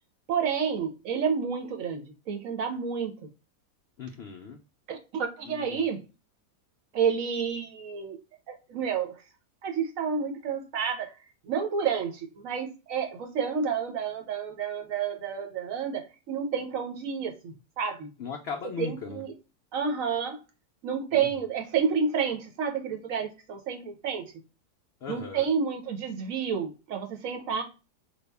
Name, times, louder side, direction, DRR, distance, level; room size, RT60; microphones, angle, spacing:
voice 1, 0.3-3.1 4.9-6.0 6.9-8.2 8.5-9.2 9.6-11.1 11.4-18.1 18.8-19.3 19.7-20.4 20.8-24.3 25.1-27.6, right 6 dB, 65° right, 1.0 m, -30 dB
voice 2, 4.0-4.6 5.4-5.8 18.2-19.2 21.1-21.3 25.0-25.5, left 6 dB, 80° left, 0.5 m, -38 dB
3.5 x 2.3 x 3.3 m
omnidirectional pair, 1.7 m